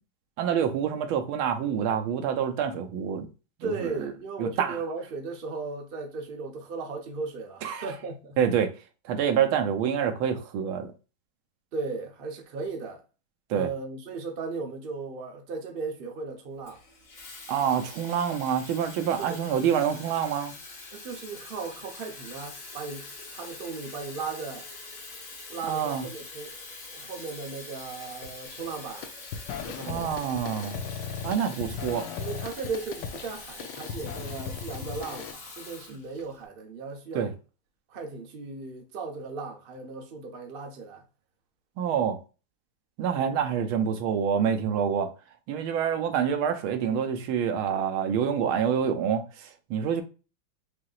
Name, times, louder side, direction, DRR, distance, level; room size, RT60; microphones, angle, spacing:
voice 1, 0.4-3.3 3.6-4.1 4.4-4.8 7.6-7.9 8.4-8.7 9.1-10.9 13.5-13.7 17.5-20.5 25.7-26.0 29.9-30.8 31.2-32.1 37.1-37.3 41.8-42.2 43.0-45.1 45.5-50.0, right 8 dB, 80° right, 1.5 m, -27 dB
voice 2, 3.6-8.4 11.7-13.0 13.5-16.8 17.6-17.7 19.2-19.4 20.9-24.7 25.5-26.6 26.9-29.1 29.6-30.2 32.2-37.3 37.9-41.0, right 4 dB, 50° right, 0.6 m, -36 dB
Water tap faucet / Fill (with liquid), 16.6-36.4, left 3 dB, 45° left, 1.4 m, -44 dB
sound 1, 28.5-28.7 29.0-35.3, left 7 dB, 75° left, 1.2 m, -37 dB
6.0 x 2.8 x 2.4 m
omnidirectional pair, 2.3 m